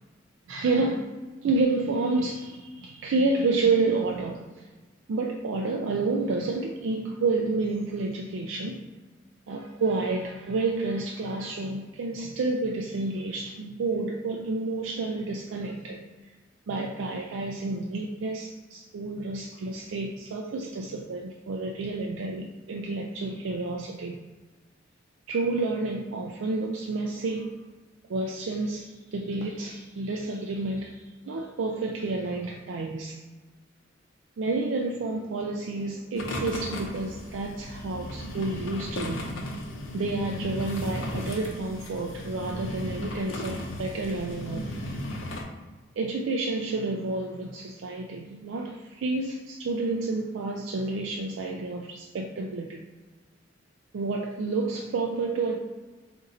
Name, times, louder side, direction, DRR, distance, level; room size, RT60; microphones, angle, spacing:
voice 1, 0.5-1.1 1.4-4.7 5.1-8.8 9.5-16.0 16.7-24.2 25.3-27.6 28.1-33.2 34.4-39.3 39.9-45.0 46.0-52.8 53.9-55.6, right 3 dB, 85° right, 1 dB, 0.4 m, -30 dB
sound 1, 36.2-45.4, left 1 dB, 90° left, 0.7 m, -36 dB
3.8 x 2.6 x 4.1 m, 1.3 s
head